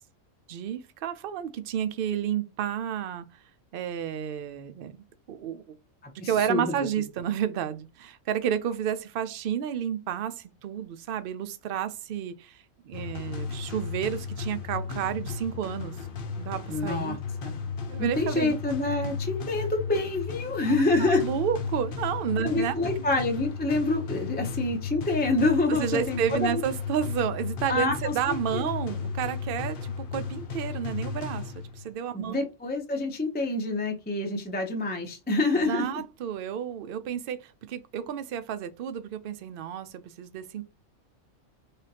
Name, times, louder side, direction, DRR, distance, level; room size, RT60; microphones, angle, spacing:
voice 1, 0.5-3.4 3.7-5.6 6.1-15.9 16.4-17.2 17.9-18.6 19.0-19.2 20.7-22.7 25.7-32.5 35.5-40.6, right 9 dB, 70° right, 0.5 m, -31 dB
voice 2, 6.0-6.7 16.7-17.2 17.4-17.5 18.0-21.2 22.4-26.6 27.7-28.7 32.1-35.9, left 2 dB, 15° left, 0.4 m, -27 dB
sound 1, 12.9-31.9, left 5 dB, 50° left, 0.7 m, -34 dB
3.7 x 3.3 x 2.8 m
omnidirectional pair, 1.4 m